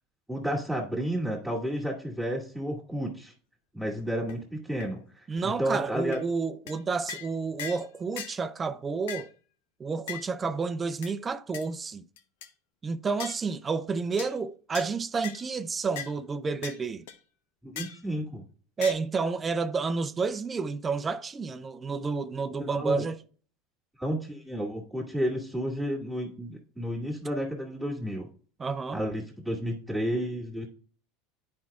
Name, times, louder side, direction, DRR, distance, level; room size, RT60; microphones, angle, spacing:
voice 1, 0.3-3.3 3.7-5.0 5.4-6.2 17.6-18.4 22.8-23.1 24.0-28.3 28.9-30.7, equal, 5° right, 2.0 m, -31 dB
sound 1, 4.0-4.1 4.3-4.4 4.8-4.9 5.4-5.5 5.7-5.8 6.1-6.2 6.7-6.8 7.1-7.3 7.6-7.9 8.2-8.4 9.1-9.3 10.1-10.3 11.0-11.1 11.5-11.7 12.2-12.5 13.2-13.4 14.2-14.3 14.7-14.9 15.2-15.5 16.0-16.1 16.6-16.8 17.1-17.2 17.8-18.0 18.8-18.9, left 7 dB, 75° left, 0.6 m, -38 dB
voice 2, 5.3-9.3 9.8-12.0 12.8-17.1 18.8-23.2 28.6-29.0, right 4 dB, 25° right, 0.4 m, -30 dB
10.0 x 4.7 x 2.4 m
hypercardioid pair, 95°, 0 cm